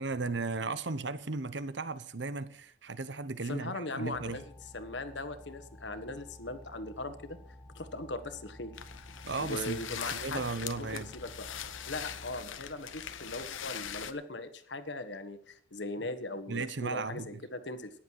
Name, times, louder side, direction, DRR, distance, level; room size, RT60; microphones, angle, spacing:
voice 1, 0.0-4.4 9.2-11.1 16.5-17.4, right 3 dB, 65° right, 1.0 m, -36 dB
voice 2, 3.5-4.4 4.7-7.4 7.7-8.7 9.0-9.1 9.4-11.5 11.8-17.9, left 2 dB, 65° left, 1.5 m, -39 dB
sound 1, 4.1-12.4, left 1 dB, 10° left, 1.1 m, -52 dB
sound 2, 8.8-14.1, left 9 dB, 90° left, 1.0 m, -42 dB
15.0 x 10.5 x 4.7 m
head